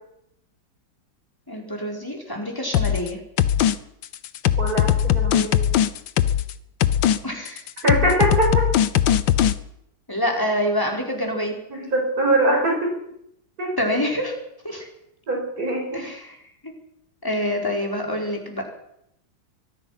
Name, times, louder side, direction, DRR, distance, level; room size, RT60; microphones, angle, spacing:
voice 1, 1.5-3.2 7.2-7.6 10.1-11.5 13.8-14.4 14.6-14.8 15.9-16.4 16.6-16.7 17.2-18.6, equal, 10° left, 0 dB, 4.9 m, -26 dB
sound 1, 2.7-3.1 3.4-3.7 4.0-6.5 6.8-7.2 7.5-9.5, left 10 dB, 80° left, 1.7 m, -19 dB
voice 2, 4.6-5.6 7.8-8.6 11.7-12.9 13.6-13.7 15.3-16.1, right 2 dB, 50° right, 0 dB, 6.4 m, -22 dB
24.0 x 19.5 x 5.9 m, 0.79 s
omnidirectional pair, 2.1 m